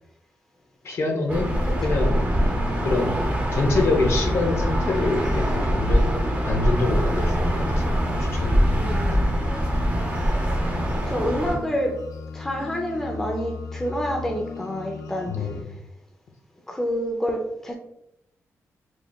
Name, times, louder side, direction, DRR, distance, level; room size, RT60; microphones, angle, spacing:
voice 1, 0.8-1.5 1.8-2.2 2.8-3.2 3.5-6.1 6.4-9.2 15.3-15.7, left 3 dB, 55° left, 2 dB, 0.8 m, -26 dB
sound 1, 1.3-11.5, equal, 25° right, 0.9 m, -23 dB
sound 2, 1.5-15.6, left 5 dB, 90° left, 0.4 m, -36 dB
voice 2, 8.7-9.3 10.3-10.4 11.1-12.0 12.3-15.6 16.7-17.8, equal, 5° left, 1 dB, 0.5 m, -28 dB
4.4 x 3.2 x 2.3 m, 0.80 s
wide cardioid pair, 135°, 5 cm